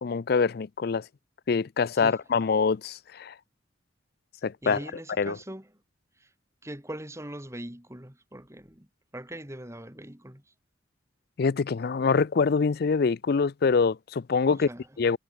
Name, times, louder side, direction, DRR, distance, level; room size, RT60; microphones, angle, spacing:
voice 1, 0.0-1.0 1.5-3.3 4.4-4.8 5.2-5.4 11.4-14.7 15.0-15.2, left 5 dB, 50° left, 0.4 m, -25 dB
voice 2, 4.6-5.7 6.2-6.3 6.6-8.9 9.1-10.5 14.5-15.0, right 1 dB, 15° right, 2.8 m, -41 dB
head